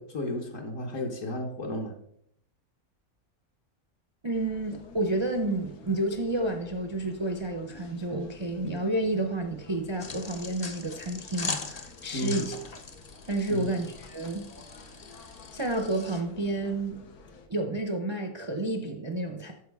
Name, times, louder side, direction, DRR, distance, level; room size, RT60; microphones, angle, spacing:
voice 1, 0.0-1.9 12.1-12.4 13.5-13.8, equal, 60° left, 1 dB, 1.4 m, -33 dB
voice 2, 4.2-12.6 13.3-14.5 15.5-17.0 17.5-19.5, right 2 dB, 35° right, 4 dB, 0.4 m, -30 dB
sound 1, 4.3-17.5, left 4 dB, 85° left, 1.4 m, -51 dB
sound 2, 10.0-16.2, left 4 dB, 40° left, 0.6 m, -40 dB
9.4 x 6.9 x 3.5 m, 0.71 s
omnidirectional pair, 1.5 m